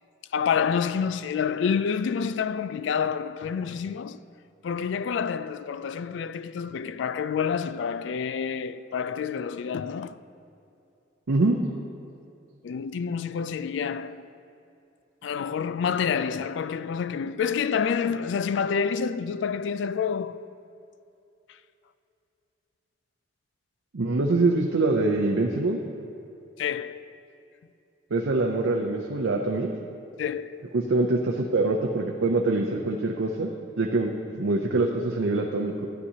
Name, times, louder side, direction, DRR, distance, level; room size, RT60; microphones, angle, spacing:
voice 1, 0.3-4.2 4.6-10.2 12.6-14.3 15.2-20.5 26.6-27.1 30.2-30.6, left 6 dB, 70° left, 0.3 m, -28 dB
voice 2, 11.3-11.6 23.9-25.8 28.1-29.7 30.7-33.5 33.8-35.9, right 2 dB, 85° right, 0.6 m, -24 dB
12.5 x 9.5 x 2.8 m
head